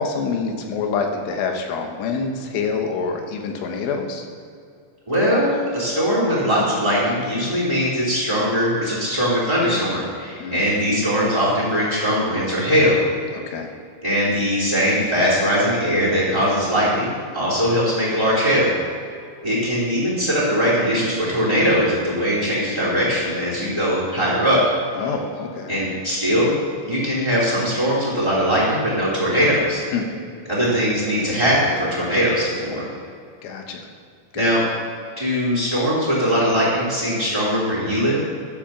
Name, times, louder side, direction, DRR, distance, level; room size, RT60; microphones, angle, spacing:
voice 1, 0.0-4.3 10.4-10.6 13.3-13.7 25.0-25.8 29.9-30.1 33.4-33.9 34.3-34.5, left 5 dB, 85° left, 4 dB, 3.6 m, -26 dB
voice 2, 5.1-13.0 14.0-18.7 19.4-24.6 25.7-29.8 30.4-32.8 34.3-34.6 35.2-38.2, equal, 10° right, -8 dB, 2.1 m, -20 dB
12.5 x 7.3 x 5.8 m, 2.3 s
omnidirectional pair, 5.5 m